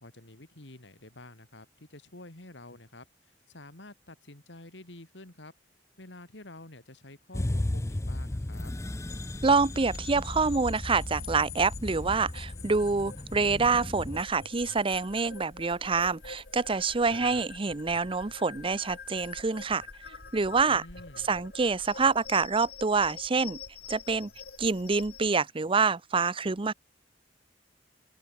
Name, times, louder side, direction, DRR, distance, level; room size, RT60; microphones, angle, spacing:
voice 1, 0.0-3.0 3.5-5.5 6.0-8.7 17.1-17.5 20.7-21.3, left 2 dB, 75° left, 3.3 m, -49 dB
sound 1, 7.3-14.2, left 1 dB, 15° left, 0.5 m, -35 dB
sound 2, 9.1-25.3, left 5 dB, 60° left, 7.4 m, -46 dB
voice 2, 9.4-19.9 20.3-20.8 21.3-23.6 23.9-24.3 24.6-26.7, right 4 dB, 30° right, 0.7 m, -26 dB
open air
head